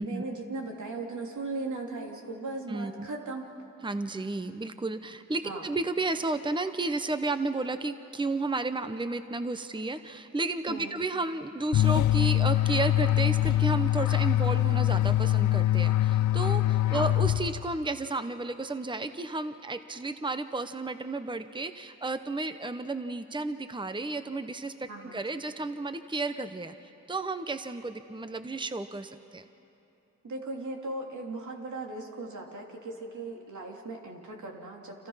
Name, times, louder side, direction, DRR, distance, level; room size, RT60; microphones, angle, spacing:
voice 1, 0.0-3.5 5.4-5.6 10.7-10.9 16.9-17.1 24.9-25.2 30.2-35.1, right 2 dB, 80° right, 0 dB, 3.2 m, -38 dB
voice 2, 2.7-3.1 3.8-26.7 27.1-29.4, right 2 dB, 15° right, 10 dB, 0.9 m, -32 dB
sound 1, 11.7-17.8, left 13 dB, 75° left, 0.5 m, -24 dB
30.0 x 27.0 x 5.7 m, 2.9 s
cardioid pair, 60°, 30 cm